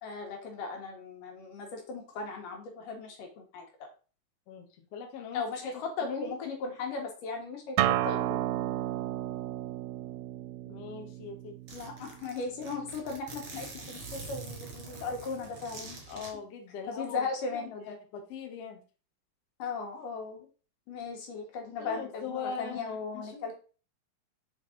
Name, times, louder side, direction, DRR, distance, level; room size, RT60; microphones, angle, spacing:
voice 1, 0.0-3.7 5.3-8.4 11.7-16.0 16.9-18.0 19.6-20.5 20.9-23.5, left 4 dB, 65° left, 1 dB, 2.9 m, -37 dB
voice 2, 4.9-5.4 5.7-6.4 10.7-11.6 16.1-17.3 17.5-18.8 21.8-23.5, left 6 dB, 85° left, 4 dB, 1.3 m, -41 dB
Acoustic guitar, 7.8-13.0, right 14 dB, 85° right, 2.3 m, -33 dB
Zipper (clothing), 10.9-11.0 11.2-11.3 11.7-16.3, right 4 dB, 45° right, 2.1 m, -45 dB
5.6 x 5.5 x 3.8 m, 0.36 s
omnidirectional pair, 4.5 m